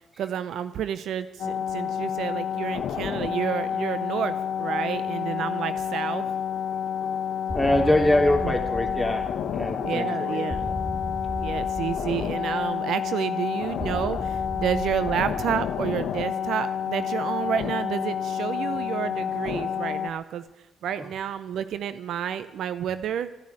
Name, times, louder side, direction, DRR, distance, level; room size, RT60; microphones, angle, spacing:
voice 1, 0.2-6.3 8.4-8.5 9.8-10.7 11.4-20.4 20.8-23.3, right 9 dB, 70° right, 13 dB, 0.6 m, -30 dB
sound 1, 1.4-20.1, left 8 dB, 70° left, 1.1 m, -29 dB
sound 2, 7.5-9.8 10.5-12.8 13.8-16.1, left 1 dB, 15° left, 2.3 m, -36 dB
voice 2, 7.5-10.7, left 1 dB, 5° right, 3 dB, 3.2 m, -24 dB
13.0 x 10.5 x 9.7 m, 1.0 s
supercardioid pair, 60°, 0 cm